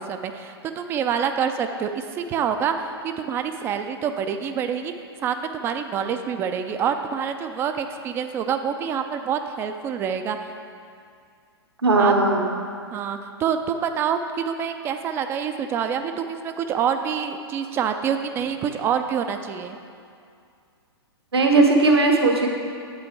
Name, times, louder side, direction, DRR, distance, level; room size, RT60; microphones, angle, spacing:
voice 1, 0.0-4.9 5.2-10.4 12.0-12.1 12.9-19.8, right 7 dB, 15° right, 7 dB, 0.3 m, -26 dB
voice 2, 11.8-12.5 21.3-22.5, right 3 dB, 70° right, 2 dB, 1.0 m, -17 dB
8.3 x 5.3 x 4.6 m, 2.4 s
figure-of-eight pair, 110°, 14 cm